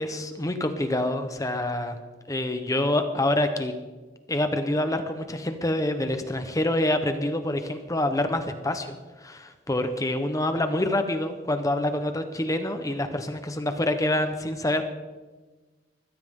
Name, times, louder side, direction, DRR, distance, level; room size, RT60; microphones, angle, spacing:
voice 1, 0.0-2.0 2.3-3.7 4.3-14.8, left 1 dB, 20° left, 7 dB, 1.0 m, -26 dB
21.0 x 15.0 x 3.8 m, 1.3 s
head